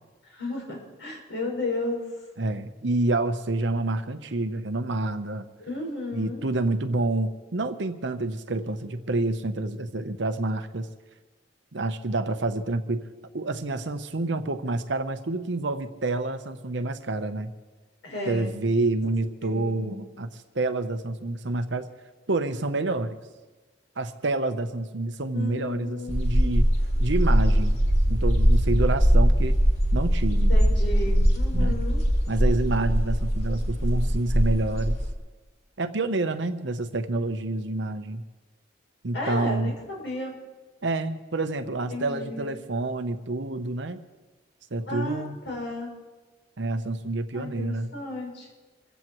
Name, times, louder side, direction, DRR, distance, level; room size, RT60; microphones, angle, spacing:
voice 1, 0.2-2.0 5.7-6.5 18.0-18.5 19.4-19.9 25.3-26.1 26.4-26.5 30.3-32.0 33.8-34.1 39.1-40.3 41.9-42.5 44.8-45.9 47.3-48.5, left 2 dB, 80° left, -1 dB, 6.1 m, -34 dB
voice 2, 2.4-5.5 6.1-10.9 11.7-13.0 13.3-17.5 18.3-20.3 20.5-21.9 22.3-23.2 24.0-26.7 27.0-27.8 28.1-29.6 29.9-30.5 31.5-31.8 32.3-35.0 35.8-38.2 39.0-39.7 40.8-44.0 44.7-45.4 46.6-47.9, right 2 dB, 65° right, 9 dB, 0.8 m, -28 dB
sound 1, 26.1-35.1, equal, 35° left, 2.2 m, -21 dB
26.5 x 15.0 x 3.1 m, 1.3 s
head